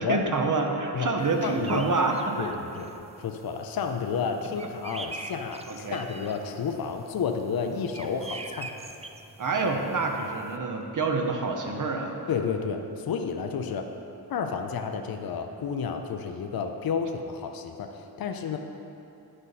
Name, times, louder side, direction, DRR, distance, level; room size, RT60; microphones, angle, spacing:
voice 1, 0.0-2.5 5.7-6.0 9.4-12.2, right 3 dB, 50° right, 3 dB, 1.0 m, -27 dB
sound 1, 1.2-10.6, right 3 dB, 20° right, 0.4 m, -44 dB
voice 2, 1.4-1.8 2.4-2.9 3.2-8.7 12.3-13.9 14.3-18.6, left 6 dB, 65° left, 5 dB, 0.6 m, -31 dB
9.9 x 5.3 x 4.1 m, 2.8 s
wide cardioid pair, 80°, 39 cm